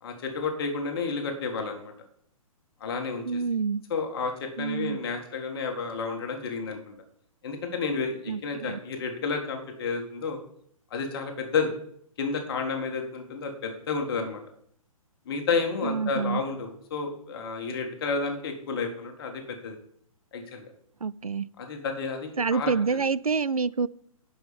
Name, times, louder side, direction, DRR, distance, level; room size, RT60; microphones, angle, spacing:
voice 1, 0.0-1.9 2.8-3.4 3.9-7.0 7.4-10.4 10.9-11.7 12.2-14.4 15.3-19.8 20.3-20.7 21.6-22.7, left 4 dB, 40° left, 4 dB, 1.9 m, -31 dB
voice 2, 3.2-3.8 4.6-5.0 8.3-8.8 15.8-16.4 21.0-21.5 22.4-23.9, right 5 dB, 85° right, 19 dB, 0.4 m, -27 dB
11.5 x 5.6 x 5.2 m, 0.66 s
figure-of-eight pair, 125°, 18 cm